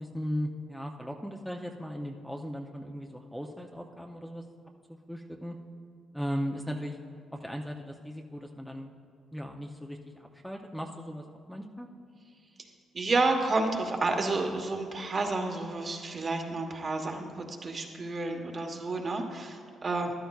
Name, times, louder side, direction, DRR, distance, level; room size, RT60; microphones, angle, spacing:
voice 1, 0.0-4.4 4.9-5.6 6.1-7.0 7.3-8.9 9.3-11.9, equal, ahead, 2 dB, 0.6 m, -37 dB
voice 2, 12.9-20.1, right 3 dB, 40° right, 3 dB, 1.2 m, -30 dB
13.5 x 11.5 x 2.4 m, 2.3 s
cardioid pair, 90°, 0 cm